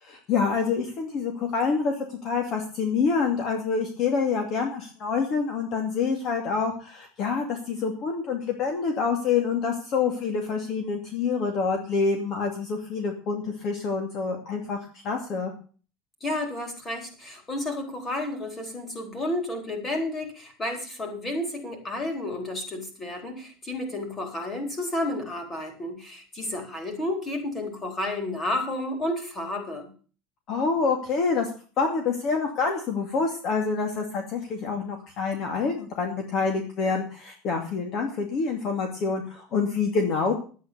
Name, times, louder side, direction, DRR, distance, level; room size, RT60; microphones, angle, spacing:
voice 1, 0.0-14.8 15.0-15.5 30.5-31.5 31.8-40.3, left 5 dB, 40° left, 3 dB, 2.5 m, -27 dB
voice 2, 16.2-29.9, left 1 dB, 20° left, 4 dB, 4.1 m, -31 dB
11.5 x 9.3 x 6.9 m, 0.39 s
cardioid pair, 155°, 0 cm